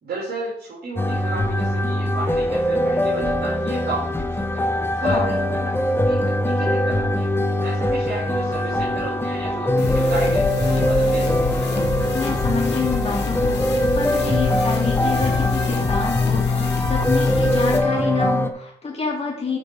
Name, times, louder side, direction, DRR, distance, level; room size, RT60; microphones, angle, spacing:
voice 1, 0.0-11.6, right 2 dB, 65° right, -4 dB, 3.1 m, -33 dB
sound 1, 1.0-18.5, left 1 dB, 15° left, 0.9 m, -22 dB
voice 2, 4.9-5.3 12.1-19.6, left 4 dB, 35° left, -2 dB, 3.6 m, -28 dB
sound 2, 9.8-17.8, left 4 dB, 85° left, 2.0 m, -27 dB
8.3 x 5.3 x 4.7 m, 0.63 s
cardioid pair, 80°, 17 cm